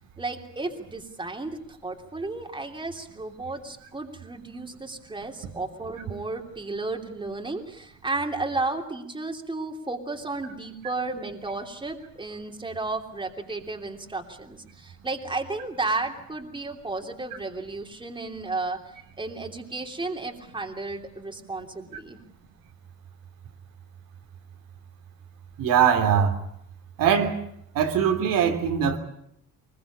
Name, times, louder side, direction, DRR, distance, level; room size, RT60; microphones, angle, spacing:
voice 1, 0.2-22.2, right 3 dB, 15° right, 3.1 m, -33 dB
voice 2, 25.6-26.4 27.0-27.4 27.7-29.0, right 8 dB, 80° right, 3.2 m, -21 dB
24.0 x 21.5 x 8.6 m
cardioid pair, 135°, 33 cm